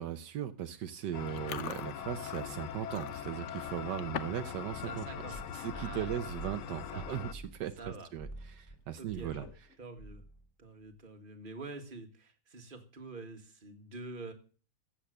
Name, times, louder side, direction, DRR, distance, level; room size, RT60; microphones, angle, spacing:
voice 1, 0.0-7.7 8.1-9.4, right 10 dB, 80° right, 10 dB, 1.4 m, -38 dB
sound 1, 1.1-7.3, left 10 dB, 80° left, 1.5 m, -42 dB
Chewing mastication, 1.3-4.5 4.8-5.1 5.6-5.8 6.6-6.7 6.9-7.2 7.6-7.7 9.2-9.8, left 8 dB, 55° left, 0.9 m, -44 dB
voice 2, 4.8-5.4 5.7-6.2 6.9-7.2 7.8-8.1 9.0-9.5 9.8-10.2 10.6-14.3, right 3 dB, 30° right, 4 dB, 1.9 m, -46 dB
sound 2, 5.3-7.9 8.2-8.7 9.1-9.6 10.0-10.5, right 1 dB, 20° left, 2.9 m, -48 dB
15.0 x 8.2 x 6.5 m, 0.38 s
omnidirectional pair, 1.9 m